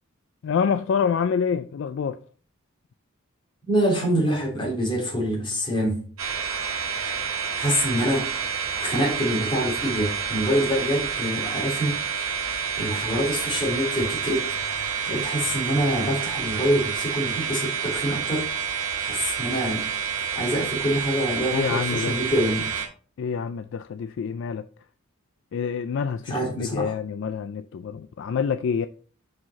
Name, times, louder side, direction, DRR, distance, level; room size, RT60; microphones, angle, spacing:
voice 1, 0.4-2.2 21.5-22.2 23.2-24.6 25.5-28.9, left 6 dB, 60° left, 0.3 m, -27 dB
voice 2, 3.7-6.0 7.6-8.3 8.8-12.0 12.8-14.5 15.1-18.5 19.1-19.9 20.3-22.7 26.3-26.9, equal, 25° left, 2.9 m, -25 dB
sound 1, 6.2-22.9, right 6 dB, 85° right, 1.9 m, -29 dB
5.7 x 5.2 x 4.0 m
head